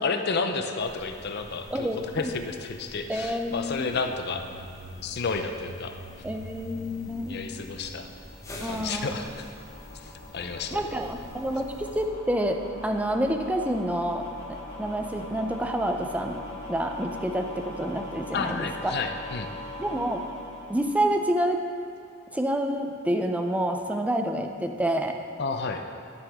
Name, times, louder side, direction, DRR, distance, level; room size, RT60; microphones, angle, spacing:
voice 1, 0.0-4.4 5.0-5.9 7.3-8.1 8.6-9.5 9.9-10.9 18.3-19.5 25.4-25.8, left 4 dB, 55° left, 6 dB, 0.6 m, -31 dB
sound 1, 0.8-12.1, left 1 dB, 15° left, 1.1 m, -45 dB
voice 2, 1.7-2.3 3.1-4.0 6.2-7.4 8.6-9.2 10.7-12.6 12.8-14.2 14.5-16.4 16.7-18.9 19.8-20.2 20.7-21.6 22.3-25.2, right 1 dB, 5° right, 4 dB, 0.5 m, -28 dB
sound 2, 6.2-21.6, left 1 dB, 75° left, 2.4 m, -42 dB
12.0 x 7.2 x 3.6 m, 2.5 s
head